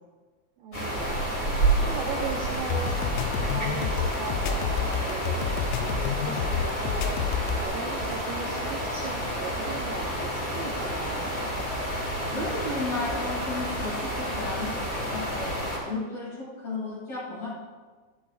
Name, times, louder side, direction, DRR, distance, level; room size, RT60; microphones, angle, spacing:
voice 1, 0.6-1.2 1.8-5.4 5.7-11.3, right 5 dB, 80° right, -3 dB, 2.1 m, -38 dB
sound 1, 0.7-15.8, right 1 dB, 25° left, 2.7 m, -30 dB
sound 2, 2.5-7.7, left 7 dB, 90° left, 3.3 m, -29 dB
voice 2, 12.3-17.5, left 2 dB, 50° left, -10 dB, 4.6 m, -34 dB
14.0 x 11.0 x 2.5 m, 1.4 s
omnidirectional pair, 5.6 m